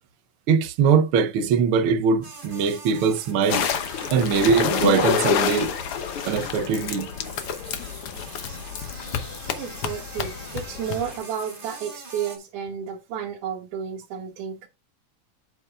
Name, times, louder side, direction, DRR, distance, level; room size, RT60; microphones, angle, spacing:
voice 1, 0.5-3.7 4.1-5.7 6.2-7.1, right 5 dB, 70° right, 1.3 m, -21 dB
sound 1, 2.2-12.4, right 3 dB, 25° right, 1.3 m, -43 dB
sound 2, 3.5-11.2, left 8 dB, 65° left, 1.5 m, -28 dB
voice 2, 9.5-14.7, right 8 dB, 85° right, 2.6 m, -32 dB
7.9 x 7.8 x 2.4 m
omnidirectional pair, 3.5 m